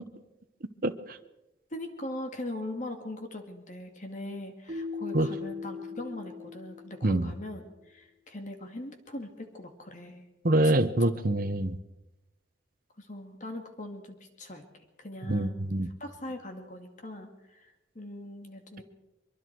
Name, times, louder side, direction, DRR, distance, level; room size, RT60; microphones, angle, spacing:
voice 1, 0.8-1.2 5.1-5.3 7.0-7.3 10.4-11.8 15.3-15.9, right 1 dB, 45° right, 8 dB, 1.0 m, -25 dB
voice 2, 1.7-10.2 10.6-10.7 11.0-11.2 13.0-15.5 16.0-18.8, left 1 dB, 40° left, 5 dB, 2.1 m, -41 dB
Keyboard (musical), 4.7-7.5, left 4 dB, 30° right, 4.5 m, -39 dB
24.0 x 23.0 x 4.7 m, 0.96 s
head